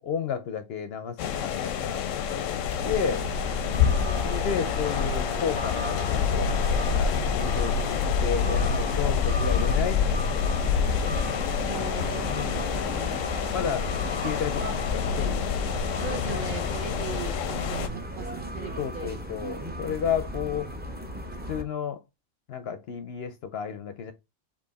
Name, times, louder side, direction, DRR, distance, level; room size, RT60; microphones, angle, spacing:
voice 1, 0.1-3.3 4.2-6.5 6.9-10.2 12.3-12.7 13.5-13.9 14.2-15.8 16.2-16.5 16.8-17.1 18.8-20.7 21.5-22.0 22.5-24.1, left 7 dB, 65° left, 0.7 m, -32 dB
sound 1, 1.2-17.9, left 7 dB, 90° left, 1.0 m, -27 dB
sound 2, 2.8-21.6, equal, 15° right, 0.4 m, -36 dB
voice 2, 3.6-4.5 11.5-13.2 15.9-19.2, right 6 dB, 45° right, 1.0 m, -39 dB
Brass instrument, 4.0-9.3, left 5 dB, 30° left, 0.6 m, -39 dB
4.6 x 2.9 x 4.0 m
omnidirectional pair, 1.3 m